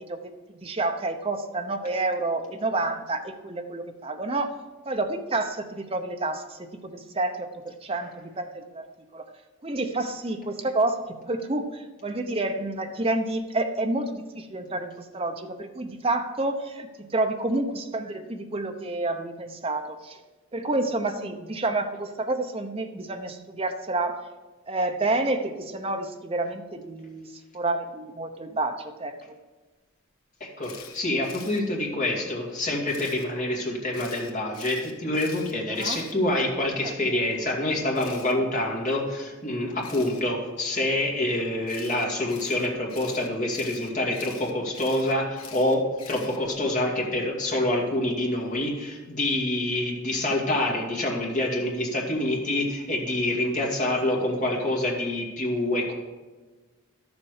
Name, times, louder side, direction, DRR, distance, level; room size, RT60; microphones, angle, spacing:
voice 1, 0.0-4.6 4.9-8.9 9.1-9.2 9.6-20.2 20.5-24.3 24.7-29.4 35.7-36.1 36.8-36.9, right 2 dB, 25° right, 5 dB, 0.7 m, -29 dB
voice 2, 30.4-55.9, left 1 dB, 35° left, -2 dB, 2.2 m, -26 dB
Camera, 30.6-31.6 32.9-33.3 33.9-36.7 37.9-38.3 39.8-40.2 41.7-46.6, left 7 dB, 85° left, 1.6 m, -45 dB
12.0 x 7.2 x 4.9 m, 1.3 s
head